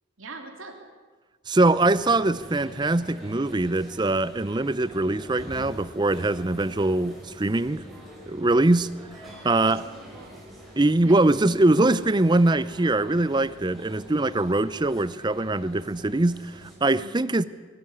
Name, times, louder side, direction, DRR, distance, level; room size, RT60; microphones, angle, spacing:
voice 1, 0.2-0.7 9.2-10.3 11.0-11.2 17.0-17.3, right 3 dB, 85° right, 3 dB, 3.2 m, -44 dB
voice 2, 1.5-7.8 8.3-8.9 9.4-9.9 10.8-17.4, right 2 dB, 20° right, 16 dB, 0.5 m, -22 dB
sound 1, 1.7-16.8, equal, ahead, 4.8 m, -45 dB
21.5 x 12.5 x 9.7 m, 1.4 s
head